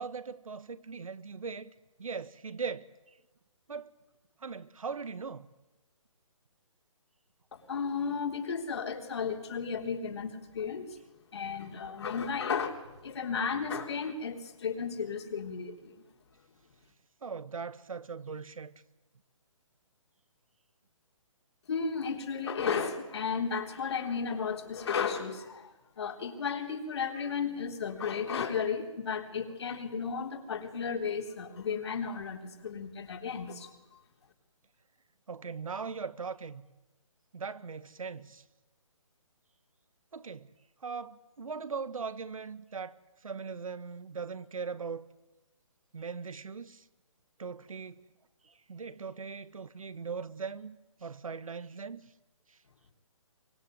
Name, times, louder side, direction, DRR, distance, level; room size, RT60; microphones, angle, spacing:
voice 1, 0.0-1.7 2.0-2.9 3.7-3.9 4.4-5.5 17.2-18.7 35.3-36.6 37.3-38.4 40.1-40.5 40.8-43.0 43.2-45.1 45.9-46.8 47.4-48.0 48.4-52.1 52.5-52.6, right 5 dB, 85° right, 1.6 m, -39 dB
voice 2, 7.5-11.0 11.3-16.0 21.7-33.7, left 6 dB, 55° left, 3.6 m, -34 dB
24.5 x 21.0 x 9.2 m
hypercardioid pair, 165°, 17 cm